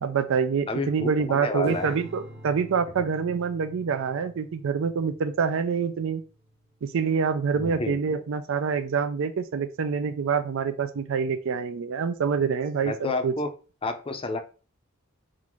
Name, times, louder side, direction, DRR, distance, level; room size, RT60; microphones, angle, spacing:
voice 1, 0.0-6.2 6.8-13.3, right 6 dB, 65° right, 11 dB, 0.4 m, -26 dB
voice 2, 0.7-2.0 3.0-3.1 7.5-8.0 12.9-13.5 13.8-14.4, left 3 dB, 25° left, 6 dB, 0.5 m, -30 dB
Strum, 1.6-8.0, right 1 dB, 50° right, 1.4 m, -48 dB
3.7 x 2.5 x 4.5 m, 0.35 s
head